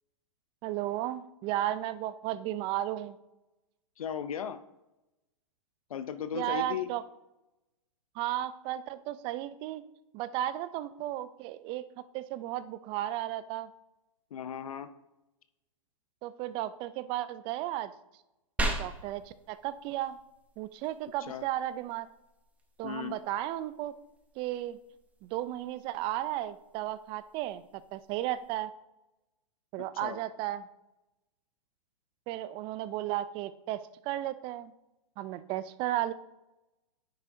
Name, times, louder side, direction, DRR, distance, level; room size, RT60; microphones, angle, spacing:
voice 1, 0.6-3.2 6.3-7.0 8.2-9.8 10.1-11.8 12.1-13.7 16.2-17.9 18.6-20.2 20.6-22.1 22.8-23.9 24.4-24.8 25.2-28.7 29.7-30.7 32.3-34.7 35.2-36.1, right 13 dB, 30° right, 15 dB, 0.4 m, -34 dB
voice 2, 4.0-4.6 5.9-6.9 14.3-14.9 21.3-21.5 22.8-23.2 29.9-30.2, left 8 dB, 80° left, 11 dB, 0.5 m, -36 dB
sound 1, 18.6-28.6, right 1 dB, 10° right, 0.7 m, -42 dB
9.7 x 6.1 x 2.6 m, 0.97 s
hypercardioid pair, 125°, 18 cm